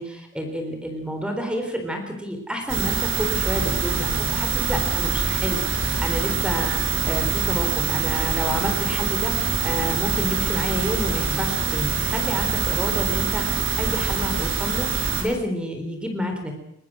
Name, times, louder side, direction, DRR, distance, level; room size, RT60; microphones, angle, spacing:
voice 1, 0.0-16.5, equal, 5° right, 5 dB, 3.9 m, -29 dB
sound 1, 2.7-15.2, right 5 dB, 85° right, 5.4 m, -24 dB
22.0 x 20.5 x 6.3 m, 0.79 s
head